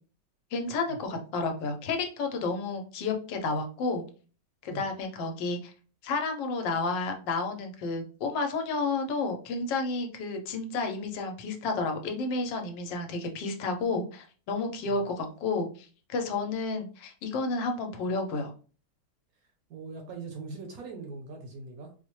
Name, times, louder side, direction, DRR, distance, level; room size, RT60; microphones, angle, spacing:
voice 1, 0.5-4.0 4.6-5.7 6.0-18.5, left 3 dB, 85° left, 1.4 m, -31 dB
voice 2, 19.7-21.9, right 3 dB, 65° right, 1.0 m, -41 dB
4.2 x 2.1 x 3.0 m
omnidirectional pair, 1.9 m